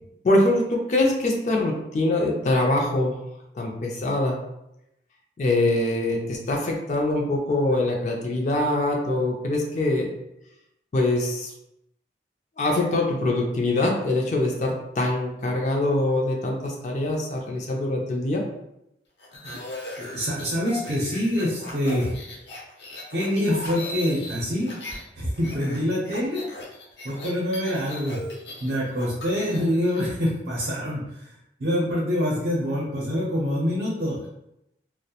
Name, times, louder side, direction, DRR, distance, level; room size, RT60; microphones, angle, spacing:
voice 1, 0.2-3.2 3.5-4.4 5.4-10.1 10.9-11.5 12.6-18.4, left 2 dB, 40° left, 0 dB, 0.3 m, -23 dB
sound 1, 19.2-25.0 25.3-30.0, left 1 dB, 75° left, 0.6 m, -38 dB
voice 2, 20.0-22.1 23.1-24.8 25.1-26.7 27.0-28.2 28.6-34.3, left 1 dB, 65° right, -5 dB, 0.6 m, -26 dB
2.3 x 2.0 x 2.7 m, 0.84 s
head